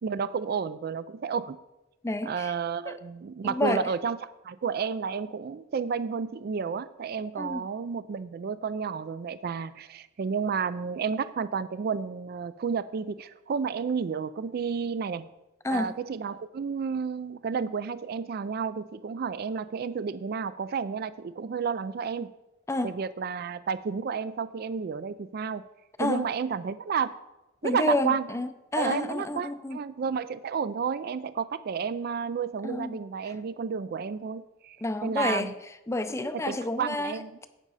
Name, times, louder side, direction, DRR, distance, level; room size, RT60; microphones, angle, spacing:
voice 1, 0.0-1.6 2.2-4.2 4.4-15.3 15.7-22.3 22.8-25.6 26.0-27.1 27.6-28.3 28.8-34.8 35.0-35.5 36.3-37.3, right 6 dB, 50° right, 15 dB, 0.4 m, -31 dB
voice 2, 2.0-2.5 2.9-3.0 3.4-3.9 7.4-7.6 15.6-15.9 22.7-23.0 26.0-26.3 27.6-29.8 32.6-33.0 34.8-35.5 35.9-37.1, left 2 dB, 15° left, 10 dB, 0.5 m, -29 dB
12.0 x 8.7 x 4.0 m, 0.98 s
head